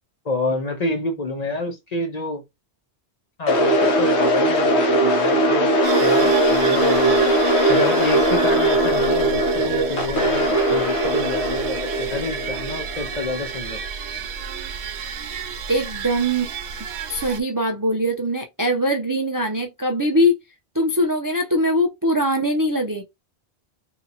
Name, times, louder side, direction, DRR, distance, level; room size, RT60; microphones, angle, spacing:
voice 1, 0.2-2.4 3.4-7.3 7.7-13.8, left 2 dB, 40° left, 0.8 m, -28 dB
sound 1, 3.5-13.5, right 1 dB, 75° left, 1.4 m, -19 dB
sound 2, 5.8-17.4, right 6 dB, 80° right, 0.9 m, -31 dB
voice 2, 15.7-16.5 17.1-20.3 20.7-23.0, equal, 25° right, 0.4 m, -21 dB
2.8 x 2.7 x 4.0 m
omnidirectional pair, 1.1 m